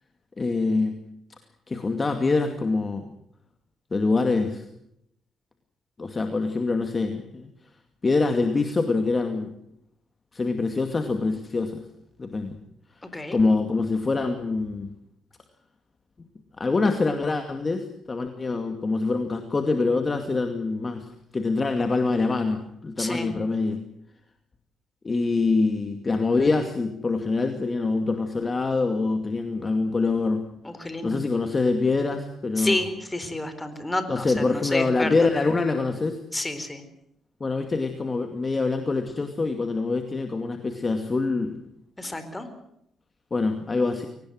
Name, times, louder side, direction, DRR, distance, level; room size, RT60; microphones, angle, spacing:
voice 1, 0.4-1.0 1.7-3.1 3.9-4.6 6.0-7.5 8.0-9.5 10.3-11.8 12.2-12.6 13.3-14.9 16.6-23.8 25.0-30.4 31.0-32.8 34.1-36.2 37.4-41.6 43.3-44.1, left 3 dB, 30° left, 6 dB, 2.3 m, -25 dB
voice 2, 23.0-23.3 30.6-31.2 32.6-35.1 36.3-36.8 42.0-42.5, left 1 dB, 15° left, 10 dB, 4.2 m, -30 dB
23.0 x 19.0 x 7.8 m, 0.75 s
cardioid pair, 90°, 0 cm